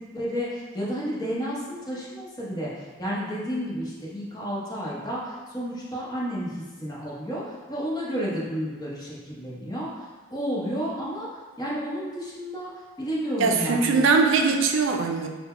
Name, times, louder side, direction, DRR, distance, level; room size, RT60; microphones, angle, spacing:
voice 1, 0.1-11.3 11.6-12.7 13.0-14.0, equal, 20° left, -7 dB, 0.8 m, -31 dB
voice 2, 13.4-15.3, right 4 dB, 75° right, 3 dB, 0.4 m, -21 dB
3.9 x 2.1 x 4.2 m, 1.3 s
head